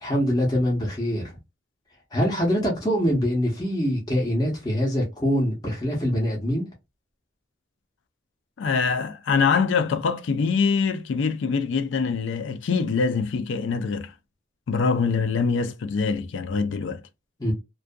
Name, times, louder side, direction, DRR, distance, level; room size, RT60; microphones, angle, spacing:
voice 1, 0.0-1.4 2.1-6.6 17.4-17.5, equal, 20° left, 0.7 m, -24 dB
voice 2, 8.6-14.1 14.7-17.0, left 5 dB, 60° left, 0.4 m, -24 dB
2.6 x 2.3 x 2.2 m
head